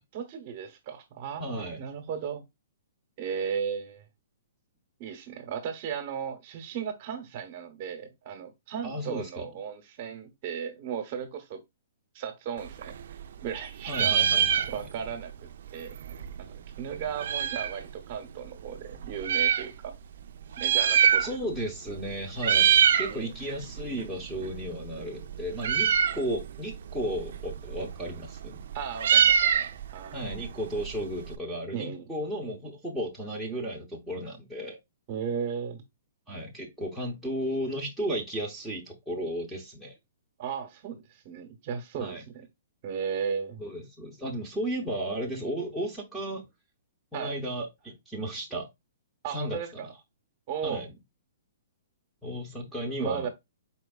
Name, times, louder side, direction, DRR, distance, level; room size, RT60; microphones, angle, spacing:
voice 1, 0.0-2.4 3.2-4.1 5.0-11.6 12.1-14.2 14.7-16.0 16.4-19.9 20.6-21.3 22.5-23.3 28.7-30.2 31.7-32.1 35.1-35.8 40.4-42.5 42.8-43.6 47.1-47.3 49.2-49.9 50.5-50.8 53.0-53.3, right 7 dB, 35° right, 0.9 m, -36 dB
voice 2, 1.4-1.8 8.8-9.5 13.9-14.7 21.2-28.6 30.1-34.8 36.3-39.9 42.0-42.2 43.6-46.4 47.1-48.7 49.3-49.9 50.6-50.9 52.2-53.3, right 1 dB, ahead, 0.8 m, -34 dB
Meow, 12.6-13.6 13.8-15.1 15.4-15.5 15.7-17.8 18.5-19.7 20.4-21.6 21.9-22.1 22.4-23.1 23.5-31.3, right 8 dB, 60° right, 0.5 m, -25 dB
4.5 x 4.4 x 2.3 m
hypercardioid pair, 160°, 0 cm